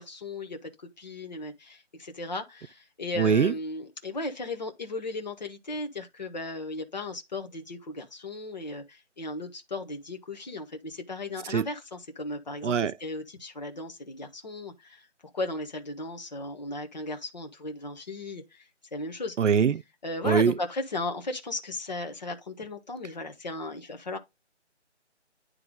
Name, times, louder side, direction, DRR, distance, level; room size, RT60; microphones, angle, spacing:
voice 1, 0.0-15.1 15.3-18.7 18.9-19.4 20.0-24.2, left 2 dB, 35° left, 1.2 m, -36 dB
voice 2, 3.2-3.5 11.5-11.7 12.6-12.9 19.4-19.8 20.2-20.5, right 7 dB, 90° right, 0.6 m, -22 dB
9.7 x 3.4 x 3.6 m
figure-of-eight pair, 170°, 35 cm